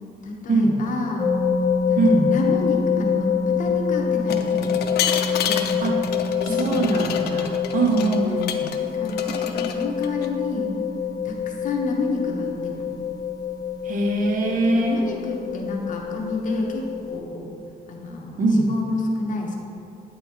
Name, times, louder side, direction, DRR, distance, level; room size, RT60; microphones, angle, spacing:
voice 1, 0.2-1.3 1.9-4.8 5.5-6.1 6.5-7.2 7.9-8.1 8.8-10.7 11.2-12.9 14.6-17.5 17.9-19.6, left 3 dB, 50° left, 0 dB, 0.9 m, -29 dB
sound 1, 1.2-17.2, left 6 dB, 20° left, 0.5 m, -26 dB
voice 2, 2.0-2.3 5.8-6.0 6.6-8.7 13.8-15.1 18.4-18.7, right 2 dB, 55° right, 1 dB, 0.9 m, -22 dB
sound 2, 4.3-8.8 9.0-10.3, left 8 dB, 80° left, 0.5 m, -29 dB
8.6 x 3.9 x 4.5 m, 2.7 s
cardioid pair, 145°, 17 cm